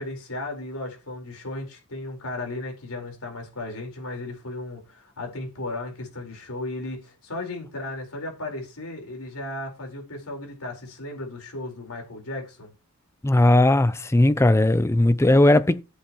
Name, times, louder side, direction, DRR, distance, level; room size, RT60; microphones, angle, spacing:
voice 1, 0.0-12.7, left 2 dB, 75° left, 4.6 m, -35 dB
voice 2, 13.2-15.8, left 1 dB, 10° left, 0.5 m, -18 dB
13.5 x 8.3 x 3.1 m
head